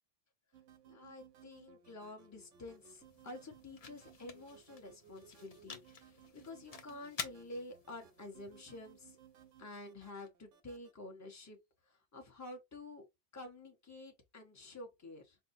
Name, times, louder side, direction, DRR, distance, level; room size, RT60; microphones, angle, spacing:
sound 1, 0.5-10.9, right 8 dB, 85° right, 1.0 m, -62 dB
voice 1, 0.8-9.2 9.6-11.6 11.9-13.1 13.3-15.4, left 2 dB, 15° left, 0.8 m, -50 dB
sound 2, 2.2-10.3, left 5 dB, 45° left, 0.5 m, -51 dB
5.6 x 2.0 x 2.6 m
omnidirectional pair, 1.2 m